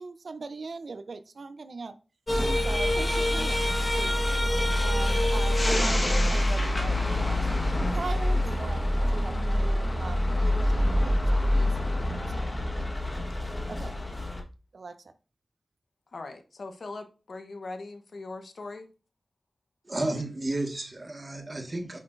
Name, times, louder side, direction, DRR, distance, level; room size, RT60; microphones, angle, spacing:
voice 1, 0.0-1.9 2.6-4.2 4.8-8.8 9.1-11.7 12.2-12.9 13.7-14.0 14.7-14.9, right 4 dB, 75° right, 0.6 m, -40 dB
sound 1, 2.3-14.4, left 1 dB, 25° left, 1.4 m, -26 dB
voice 2, 16.1-18.9, left 3 dB, 70° left, 1.0 m, -40 dB
voice 3, 19.9-22.0, right 2 dB, 35° right, 1.7 m, -32 dB
8.4 x 5.8 x 2.6 m
wide cardioid pair, 70°, 0 cm